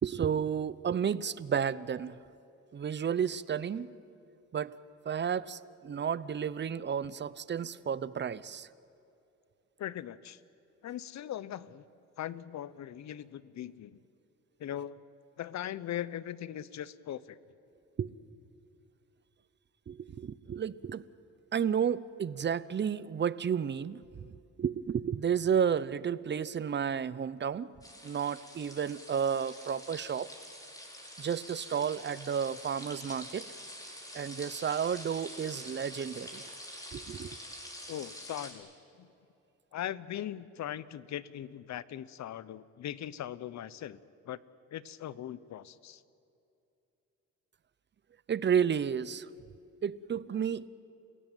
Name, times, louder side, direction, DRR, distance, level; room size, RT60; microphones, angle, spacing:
voice 1, 0.0-2.2 2.7-3.9 4.5-4.8 5.1-8.7 18.0-18.1 19.9-21.0 21.5-24.3 24.6-27.7 28.0-30.3 31.2-33.5 34.1-36.5 36.9-37.4 48.3-49.3 49.8-50.7, right 7 dB, 35° right, 18 dB, 0.8 m, -32 dB
voice 2, 9.8-10.4 10.8-11.8 12.2-14.0 14.6-15.0 15.4-17.4 37.9-38.7 39.0-39.1 39.7-44.0 44.3-44.4 44.7-46.0, left 11 dB, 65° left, 18 dB, 0.9 m, -40 dB
sound 1, 27.8-38.5, left 1 dB, 10° left, 5.3 m, -46 dB
29.5 x 16.5 x 9.2 m, 2.8 s
cardioid pair, 90°, 30 cm